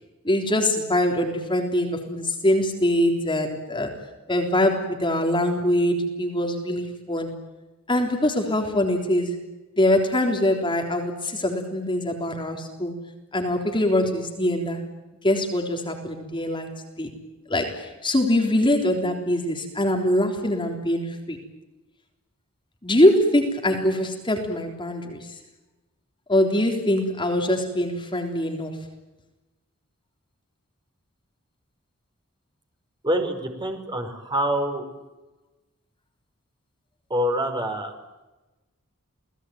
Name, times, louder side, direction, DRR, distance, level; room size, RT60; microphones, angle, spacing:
voice 1, 0.2-4.0 4.3-7.3 7.9-9.4 9.8-13.0 13.3-14.8 15.2-16.7 17.0-17.1 17.5-21.4 22.8-25.3 26.3-28.8, left 1 dB, 25° left, 3 dB, 3.6 m, -23 dB
voice 2, 33.0-34.9 37.1-37.9, equal, 20° right, 4 dB, 4.9 m, -26 dB
29.0 x 19.5 x 9.3 m, 1.1 s
head